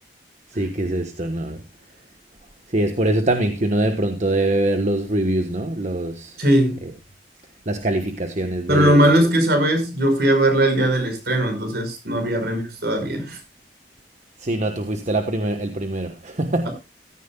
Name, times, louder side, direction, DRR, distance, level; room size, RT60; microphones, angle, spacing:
voice 1, 0.5-1.6 2.7-6.4 6.8-6.9 7.7-9.1 12.4-12.7 14.4-16.7, right 1 dB, 45° right, 1.2 m, -23 dB
voice 2, 6.4-6.8 8.7-13.4 16.7-16.8, right 1 dB, 65° right, 5.5 m, -19 dB
15.5 x 13.5 x 2.3 m
head